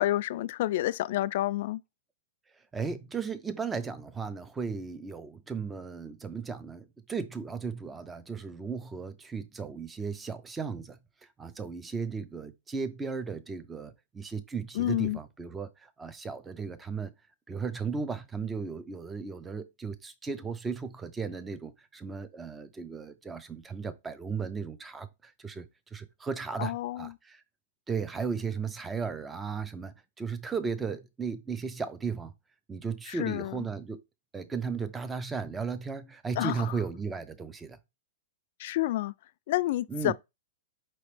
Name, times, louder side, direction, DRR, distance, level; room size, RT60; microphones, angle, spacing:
voice 1, 0.0-1.8 14.7-15.2 26.6-27.1 33.1-33.5 36.4-36.6 38.6-39.1 39.5-40.1, left 15 dB, 60° left, 0.3 m, -29 dB
voice 2, 2.7-11.0 11.4-17.1 17.5-27.4 27.9-32.3 32.7-34.0 34.3-37.8 39.9-40.1, right 5 dB, 10° right, 0.6 m, -35 dB
5.1 x 3.0 x 3.3 m
hypercardioid pair, 145°, 0 cm